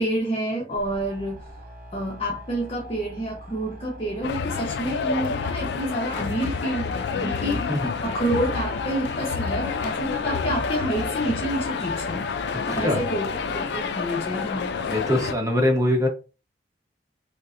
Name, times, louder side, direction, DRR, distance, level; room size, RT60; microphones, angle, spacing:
voice 1, 0.0-1.4 1.9-7.6 8.0-12.3 12.7-14.7, right 1 dB, 35° left, 0.8 m, -28 dB
sound 1, 0.7-13.9, right 1 dB, 50° right, 0.8 m, -43 dB
sound 2, 4.2-15.3, left 5 dB, 65° left, 0.3 m, -29 dB
voice 2, 7.2-7.9 12.7-13.0 14.8-16.1, left 1 dB, 20° right, 0.9 m, -23 dB
5.2 x 2.1 x 2.5 m
head